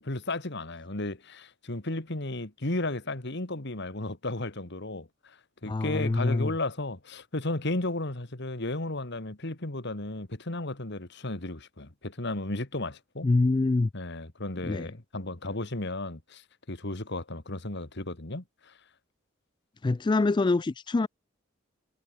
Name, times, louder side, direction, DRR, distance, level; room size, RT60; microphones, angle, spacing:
voice 1, 0.0-5.4 5.6-13.3 13.9-16.4 16.7-18.7, left 2 dB, 60° left, 2.2 m, -34 dB
voice 2, 5.7-6.5 13.2-13.9 14.6-14.9 19.8-21.1, left 3 dB, 25° left, 0.3 m, -25 dB
head